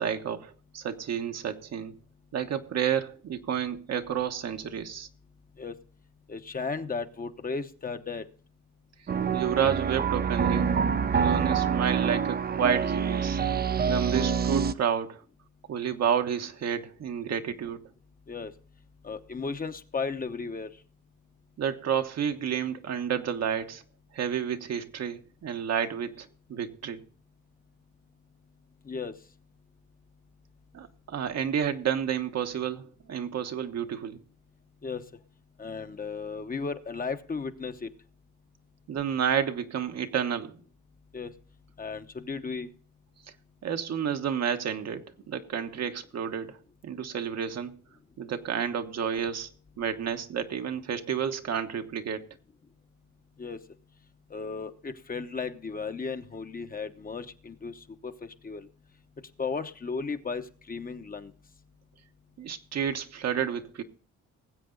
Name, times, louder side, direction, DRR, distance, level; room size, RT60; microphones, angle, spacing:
voice 1, 0.0-1.9 2.3-5.1 9.3-10.7 11.1-13.4 13.8-15.2 15.7-17.8 21.6-23.8 24.1-27.0 30.7-34.2 38.9-40.6 43.6-46.6 46.8-47.7 48.2-49.5 49.8-52.2 62.4-63.8, right 8 dB, 60° right, 1.2 m, -30 dB
voice 2, 6.3-8.2 18.3-18.5 19.0-20.7 28.8-29.1 34.8-35.0 35.6-37.9 41.1-41.3 41.8-42.7 53.4-53.6 54.3-58.7 59.4-61.3, left 4 dB, 30° left, 1.0 m, -35 dB
sound 1, 9.1-14.7, right 6 dB, 30° right, 0.6 m, -26 dB
19.5 x 7.7 x 3.9 m
cardioid pair, 90°, 30 cm